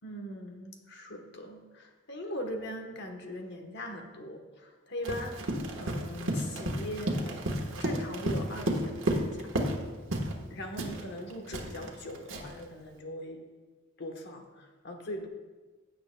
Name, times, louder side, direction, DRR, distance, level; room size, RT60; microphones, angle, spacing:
voice 1, 0.0-7.4 7.8-9.5 10.5-13.4 14.0-15.3, equal, 60° left, 3 dB, 1.1 m, -40 dB
Run, 5.0-9.8 10.1-10.4 10.8-12.6, right 1 dB, 70° right, 1.3 m, -32 dB
16.0 x 7.8 x 2.2 m, 1.3 s
head